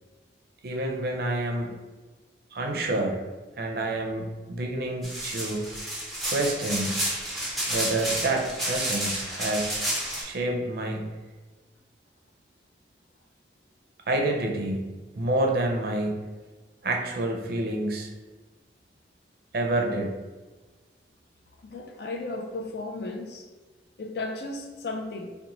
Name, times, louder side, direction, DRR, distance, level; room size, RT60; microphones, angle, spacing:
voice 1, 0.6-1.7 2.5-3.2 3.6-5.8 6.2-6.9 7.7-9.8 10.2-11.1 14.1-14.9 15.2-16.3 16.8-18.1 19.5-20.1, right 2 dB, 55° right, 2 dB, 0.5 m, -28 dB
sound 1, 5.0-10.2, right 1 dB, ahead, 0.7 m, -30 dB
voice 2, 21.6-23.5 24.0-25.4, left 2 dB, 65° left, 3 dB, 0.4 m, -35 dB
3.9 x 2.1 x 2.9 m, 1.3 s
head